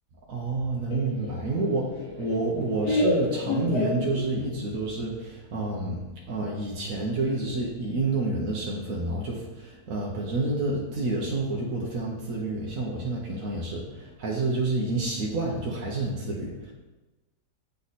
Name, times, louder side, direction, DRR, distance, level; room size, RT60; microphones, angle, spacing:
voice 1, 0.3-16.7, right 2 dB, 60° right, -3 dB, 1.2 m, -29 dB
Laughter, 0.9-4.6, left 2 dB, 80° left, 1.5 m, -29 dB
8.2 x 3.3 x 4.1 m, 1.1 s
omnidirectional pair, 1.8 m